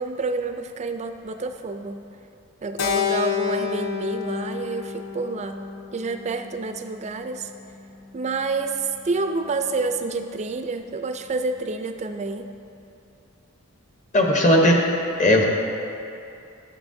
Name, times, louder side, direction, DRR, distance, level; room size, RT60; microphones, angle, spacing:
voice 1, 0.0-2.0 2.6-5.6 5.9-7.5 8.1-12.4, right 3 dB, 30° right, 7 dB, 0.4 m, -28 dB
Keyboard (musical), 2.8-7.2, left 7 dB, 75° left, 0.6 m, -29 dB
voice 2, 14.1-14.8 15.2-15.4, left 1 dB, 35° left, 1 dB, 0.9 m, -16 dB
13.0 x 7.0 x 2.7 m, 2.7 s
head